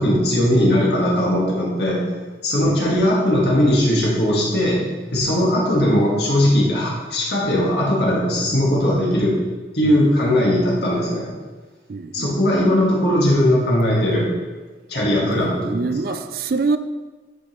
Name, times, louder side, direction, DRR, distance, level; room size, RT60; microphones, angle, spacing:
voice 1, 0.0-2.0 2.4-4.8 5.1-9.4 9.7-11.3 12.1-14.4 14.9-16.2, left 1 dB, 70° left, -4 dB, 1.9 m, -19 dB
voice 2, 2.6-3.0 9.8-10.1 10.5-10.6 11.9-12.3 15.2-16.8, right 4 dB, 55° right, 12 dB, 0.4 m, -26 dB
9.8 x 5.1 x 3.1 m, 1.3 s
head